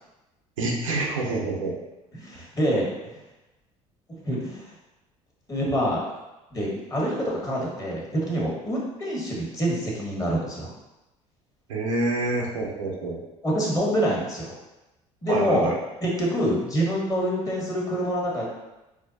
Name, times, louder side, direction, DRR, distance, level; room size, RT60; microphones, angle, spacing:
voice 1, 0.6-1.7 11.7-13.2 15.3-15.7, right 2 dB, 85° right, -1 dB, 0.6 m, -27 dB
voice 2, 2.1-3.1 4.2-4.6 5.5-6.1 6.5-10.7 13.4-14.5 15.2-15.7 16.0-18.4, equal, 20° left, -4 dB, 1.3 m, -26 dB
4.3 x 2.2 x 2.6 m, 0.99 s
hypercardioid pair, 65°, 16 cm